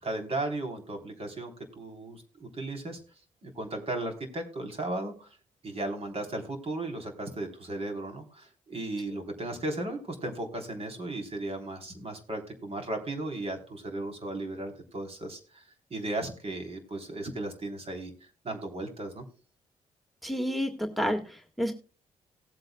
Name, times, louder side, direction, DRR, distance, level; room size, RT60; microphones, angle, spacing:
voice 1, 0.0-3.0 3.4-5.3 5.6-15.6 15.9-18.1 18.4-19.3, right 2 dB, 45° right, 5 dB, 3.6 m, -35 dB
voice 2, 20.2-21.7, equal, ahead, 7 dB, 1.7 m, -30 dB
18.5 x 8.0 x 2.2 m, 0.36 s
supercardioid pair, 55°, 14 cm